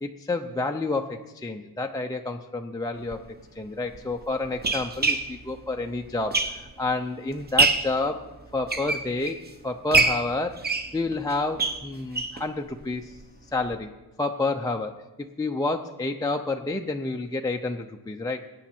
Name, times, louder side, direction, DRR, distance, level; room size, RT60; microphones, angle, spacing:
voice 1, 0.0-3.2 3.6-8.2 8.5-9.4 9.6-10.6 10.9-13.2 13.5-13.9 14.2-14.9 15.4-18.4, left 2 dB, 10° left, 3 dB, 0.4 m, -29 dB
sound 1, 3.0-3.2 3.9-6.9 7.3-8.0 8.5-9.5 9.9-12.4 12.8-12.9 13.2-13.3 13.6-13.7, right 3 dB, 25° right, 0.8 m, -25 dB
20.5 x 9.1 x 4.3 m, 1.1 s
wide cardioid pair, 165°, 41 cm